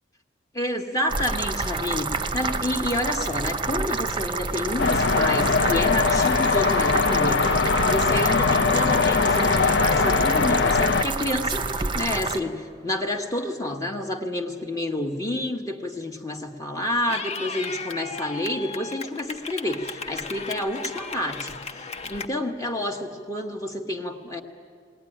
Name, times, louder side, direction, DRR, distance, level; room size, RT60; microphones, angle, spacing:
voice 1, 0.5-24.4, left 1 dB, 20° left, 1 dB, 1.3 m, -29 dB
sound 1, 1.1-12.4, right 4 dB, 25° right, 0.8 m, -28 dB
sound 2, 4.8-11.0, left 4 dB, 65° left, 0.7 m, -21 dB
Clapping / Cheering, 17.1-22.3, left 4 dB, 35° left, 0.9 m, -35 dB
20.5 x 19.0 x 10.0 m, 2.1 s
head